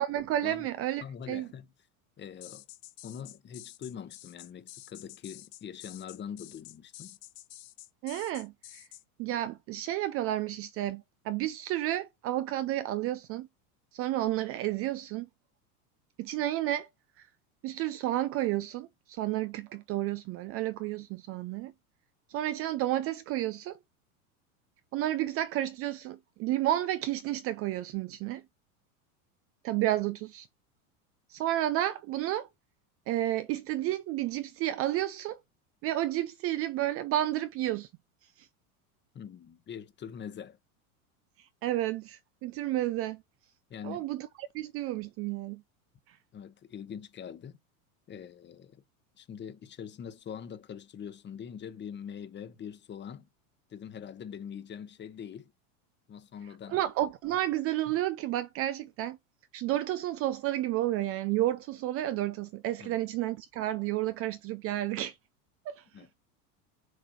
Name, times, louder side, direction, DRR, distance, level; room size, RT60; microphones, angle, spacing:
voice 1, 0.0-1.5 8.0-8.9 9.2-13.5 13.9-15.3 16.2-16.9 17.2-17.3 17.6-21.7 22.3-23.8 24.9-28.4 29.6-30.5 31.3-32.5 33.1-35.4 35.8-37.9 38.4-38.5 41.4-43.2 43.8-45.6 46.1-46.2 56.7-59.2 59.5-65.2 65.7-66.0, right 14 dB, 35° right, 0.4 m, -31 dB
voice 2, 1.0-1.7 2.2-2.7 3.0-7.2 39.1-40.6 43.7-44.0 46.3-47.6 48.1-48.8 49.2-53.3 53.7-55.5 56.1-56.8 62.8-63.0 65.9-66.1, left 8 dB, 25° left, 1.0 m, -43 dB
sound 1, 2.4-9.0, left 16 dB, 70° left, 1.0 m, -49 dB
6.3 x 3.3 x 5.6 m
hypercardioid pair, 110°, 44 cm